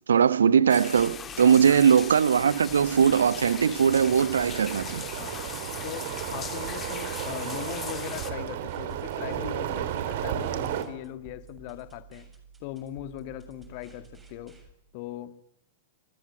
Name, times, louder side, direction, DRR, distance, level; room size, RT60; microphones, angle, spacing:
voice 1, 0.1-5.0, right 7 dB, 70° right, 1.1 m, -20 dB
sound 1, 0.7-8.3, left 8 dB, 25° left, 3.0 m, -39 dB
sound 2, 1.0-14.7, right 5 dB, 10° right, 7.1 m, -52 dB
sound 3, 2.4-10.8, right 10 dB, 55° right, 3.2 m, -34 dB
voice 2, 5.2-5.5 5.8-12.3 12.6-14.6 14.9-15.4, left 13 dB, 45° left, 1.8 m, -40 dB
28.5 x 20.5 x 8.8 m
figure-of-eight pair, 95°, 0 cm